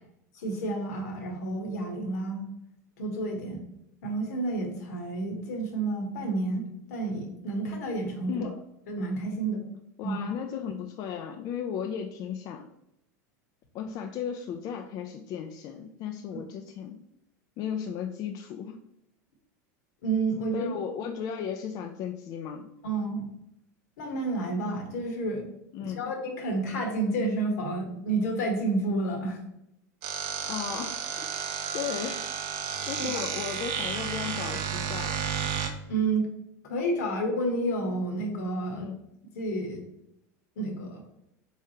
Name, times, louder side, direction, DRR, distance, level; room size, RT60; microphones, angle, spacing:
voice 1, 0.4-2.4 3.0-3.6 4.0-8.5 8.9-9.6 10.0-10.2 20.0-20.8 22.8-23.2 24.0-25.5 25.8-29.4 33.0-33.2 35.9-36.3 36.6-38.9 39.3-39.8 40.6-41.0, right 2 dB, 75° left, 2 dB, 1.1 m, -30 dB
voice 2, 10.0-12.7 13.7-17.0 17.6-18.8 20.5-22.7 25.7-26.0 30.5-31.3 31.7-32.2 32.9-35.2 38.7-39.0, left 8 dB, 45° left, 4 dB, 0.4 m, -35 dB
sound 1, 30.0-35.7, right 7 dB, 60° right, 0.6 m, -32 dB
3.6 x 3.3 x 2.8 m, 0.81 s
hypercardioid pair, 105°, 9 cm